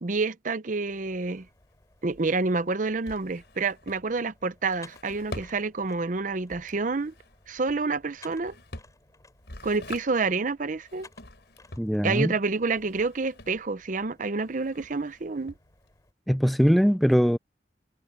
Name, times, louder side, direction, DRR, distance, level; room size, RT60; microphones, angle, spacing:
voice 1, 0.0-1.5 2.0-7.1 7.5-8.5 9.6-11.1 12.0-15.5, right 3 dB, 45° right, 0.7 m, -28 dB
sound 1, 0.8-16.1, left 3 dB, 20° left, 5.3 m, -59 dB
Drawer open or close, 0.9-16.1, left 2 dB, 70° left, 5.1 m, -47 dB
voice 2, 11.8-12.3 16.3-17.4, equal, ahead, 0.3 m, -21 dB
head